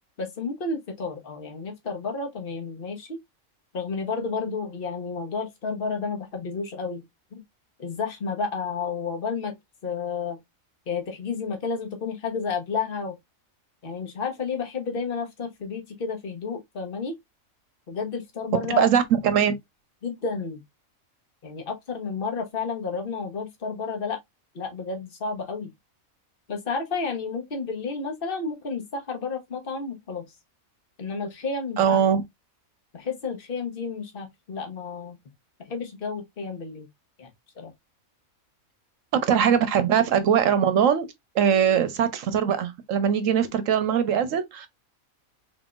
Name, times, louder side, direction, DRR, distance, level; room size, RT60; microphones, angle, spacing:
voice 1, 0.2-3.1 3.7-7.0 7.3-7.4 7.8-9.5 9.8-10.4 10.9-13.2 13.8-17.1 17.9-18.9 20.0-20.6 21.4-24.2 24.5-25.7 26.5-30.3 31.0-32.0 32.9-35.2 35.7-36.9 37.2-37.3 37.6-37.7, left 4 dB, 45° left, 1.2 m, -31 dB
voice 2, 18.8-19.5 31.8-32.2 39.3-41.1 41.3-44.7, right 8 dB, 70° right, 1.1 m, -21 dB
3.8 x 3.6 x 2.4 m
omnidirectional pair, 1.5 m